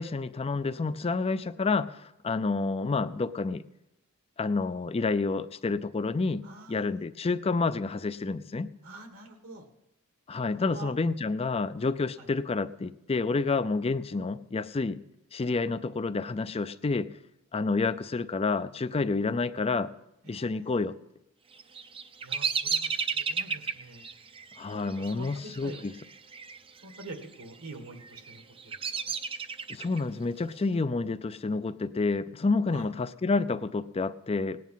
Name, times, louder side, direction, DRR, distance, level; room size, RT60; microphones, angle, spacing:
voice 1, 0.0-3.6 4.4-6.4 6.7-8.7 10.3-15.0 15.3-17.1 17.5-19.9 20.3-20.9 24.6-25.9 29.7-34.6, left 3 dB, 25° left, 14 dB, 0.4 m, -29 dB
voice 2, 6.4-7.0 8.8-9.7 10.6-11.0 12.2-12.3 20.2-20.9 22.2-24.1 24.8-25.9 26.8-28.8 29.0-29.1 32.7-32.9, right 2 dB, 70° right, 5 dB, 1.8 m, -46 dB
Bird vocalization bird call bird song, 21.5-26.6 26.8-27.4 28.0-30.0, right 6 dB, 25° right, 0.6 m, -33 dB
18.0 x 9.3 x 5.7 m, 0.88 s
head